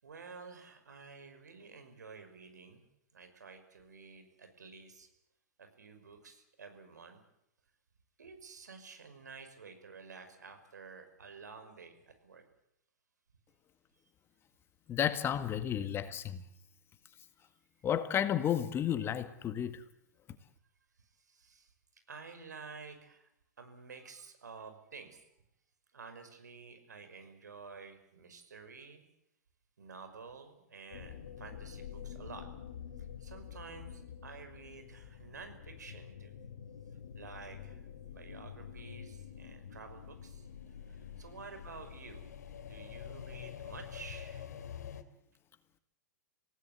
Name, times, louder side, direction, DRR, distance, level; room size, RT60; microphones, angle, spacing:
voice 1, 0.0-2.8 3.1-5.1 5.6-7.2 8.2-12.4 17.4-17.5 19.0-19.1 21.0-23.3 23.6-25.2 25.9-29.0 29.8-32.5 33.0-36.4 37.1-37.8 38.1-40.5 40.8-42.3 42.6-44.6, right 5 dB, 80° right, 5.8 m, -51 dB
voice 2, 14.9-16.4 17.8-19.8, left 9 dB, 25° left, 1.8 m, -32 dB
sound 1, 30.9-45.0, left 8 dB, 70° left, 2.6 m, -47 dB
27.0 x 18.0 x 8.3 m
hypercardioid pair, 110°, 9 cm